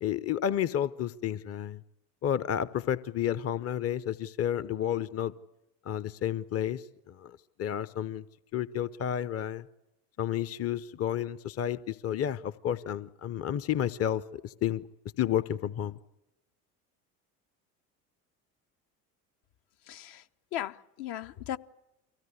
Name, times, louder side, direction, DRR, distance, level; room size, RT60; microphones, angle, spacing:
voice 1, 0.0-1.8 2.2-5.3 5.8-8.2 8.5-9.7 10.2-14.9 15.2-16.0, left 10 dB, 30° left, 0.8 m, -31 dB
voice 2, 19.8-21.6, left 12 dB, 55° left, 1.1 m, -37 dB
24.0 x 16.5 x 9.8 m
hypercardioid pair, 70°, 47 cm